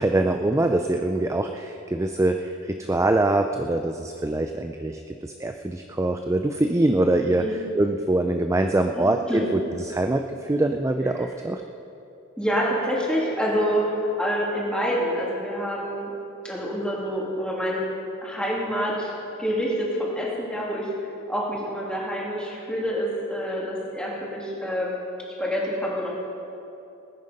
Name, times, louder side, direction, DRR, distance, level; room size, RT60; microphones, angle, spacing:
voice 1, 0.0-7.4 7.7-9.6 9.9-11.6, right 2 dB, 15° right, 5 dB, 0.4 m, -24 dB
voice 2, 7.2-7.6 8.9-9.5 11.1-11.3 12.4-16.1 16.4-17.8 18.2-20.9 21.3-24.9 25.4-26.1, equal, 5° left, -5 dB, 3.0 m, -27 dB
20.0 x 9.6 x 5.3 m, 2.8 s
head